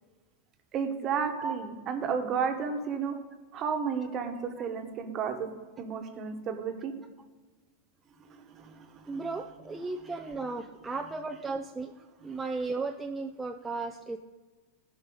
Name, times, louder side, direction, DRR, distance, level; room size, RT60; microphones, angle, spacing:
voice 1, 0.7-3.2 3.5-5.5 5.8-6.9 8.5-9.3, right 6 dB, 35° right, 5 dB, 1.3 m, -32 dB
voice 2, 9.1-14.2, right 3 dB, 10° right, 4 dB, 0.4 m, -35 dB
15.5 x 5.8 x 3.9 m, 1.3 s
supercardioid pair, 140°, 0 cm